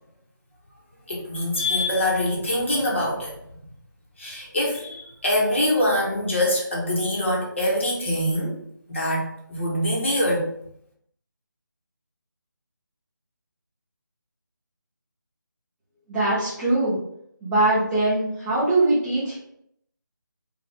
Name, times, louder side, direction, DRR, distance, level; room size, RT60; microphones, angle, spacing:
voice 1, 1.1-3.3 4.2-8.6 8.9-10.4, left 1 dB, 35° left, -3 dB, 1.2 m, -24 dB
voice 2, 16.1-17.0 17.4-19.4, right 2 dB, ahead, -19 dB, 1.1 m, -22 dB
5.4 x 2.6 x 3.7 m, 0.72 s
figure-of-eight pair, 175°, 11 cm